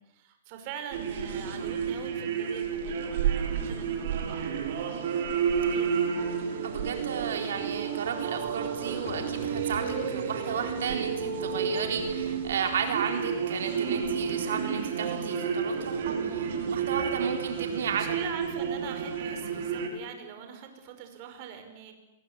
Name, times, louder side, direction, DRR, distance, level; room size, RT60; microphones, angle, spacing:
voice 1, 0.0-4.5 5.5-6.0 17.8-21.9, right 8 dB, 40° right, 6 dB, 5.6 m, -43 dB
sound 1, 0.9-19.9, right 7 dB, 60° right, 5.7 m, -31 dB
voice 2, 6.6-18.2, right 7 dB, 80° right, 4 dB, 4.0 m, -33 dB
sound 2, 9.0-13.9 14.2-14.3, left 6 dB, 60° left, 3.7 m, -47 dB
26.5 x 21.0 x 9.8 m, 0.96 s
hypercardioid pair, 150°, 0 cm